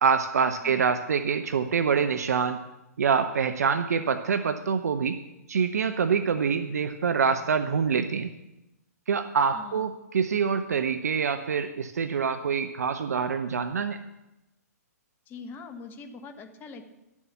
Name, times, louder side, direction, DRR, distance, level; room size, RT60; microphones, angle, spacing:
voice 1, 0.0-2.6 3.0-5.2 5.5-8.3 9.1-14.0, right 6 dB, 70° right, 9 dB, 0.7 m, -25 dB
voice 2, 0.6-0.9 9.5-9.9 15.3-16.8, left 4 dB, 25° left, 7 dB, 1.2 m, -43 dB
11.5 x 7.2 x 7.1 m, 0.96 s
figure-of-eight pair, 125°, 9 cm